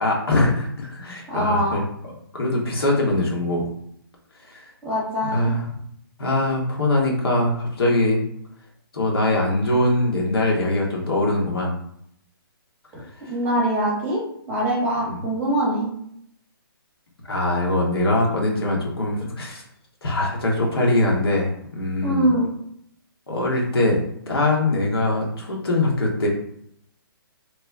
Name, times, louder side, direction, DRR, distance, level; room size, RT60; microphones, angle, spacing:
voice 1, 0.0-1.8 2.3-3.7 4.5-4.7 5.3-5.7 6.2-8.2 8.9-11.7 15.0-15.2 17.3-19.6 20.0-22.3 23.3-24.0 24.3-26.3, left 2 dB, 80° left, -2 dB, 1.4 m, -22 dB
voice 2, 1.3-1.8 4.8-5.5 12.9-13.0 13.3-14.2 14.5-15.9 22.0-22.5, right 1 dB, 15° right, -5 dB, 0.9 m, -23 dB
3.0 x 2.1 x 3.6 m, 0.71 s
hypercardioid pair, 160°, 13 cm